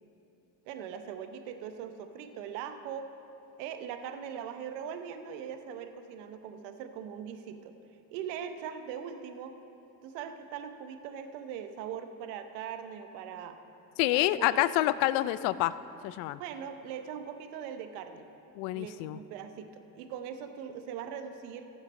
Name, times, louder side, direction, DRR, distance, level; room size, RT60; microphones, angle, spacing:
voice 1, 0.7-3.1 3.6-7.7 8.1-9.5 10.0-13.6 14.1-14.7 15.1-15.3 16.4-18.3 18.7-21.7, right 8 dB, 85° right, 8 dB, 0.9 m, -41 dB
voice 2, 14.0-15.7 16.0-16.4 18.6-19.2, left 16 dB, 80° left, 16 dB, 0.6 m, -27 dB
15.0 x 7.4 x 5.4 m, 2.8 s
supercardioid pair, 75°, 48 cm